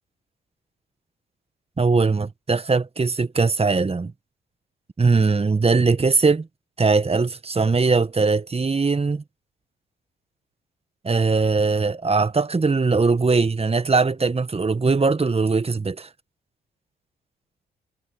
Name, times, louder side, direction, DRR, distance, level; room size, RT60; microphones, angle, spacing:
voice 1, 1.8-4.1 5.0-6.5 6.8-9.2 11.0-16.1, right 4 dB, 30° right, 1.7 m, -20 dB
hypercardioid pair, 45°, 21 cm